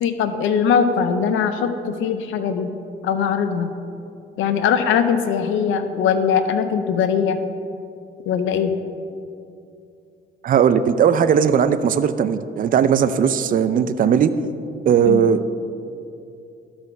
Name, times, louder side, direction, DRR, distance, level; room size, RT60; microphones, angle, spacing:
voice 1, 0.0-2.7 3.0-3.7 4.4-7.4 8.3-8.7 15.1-15.3, left 7 dB, 85° left, 9 dB, 0.6 m, -21 dB
voice 2, 10.4-14.3 14.9-15.6, right 7 dB, 45° right, 11 dB, 0.4 m, -18 dB
12.5 x 4.3 x 5.5 m, 2.6 s
cardioid pair, 90°, 20 cm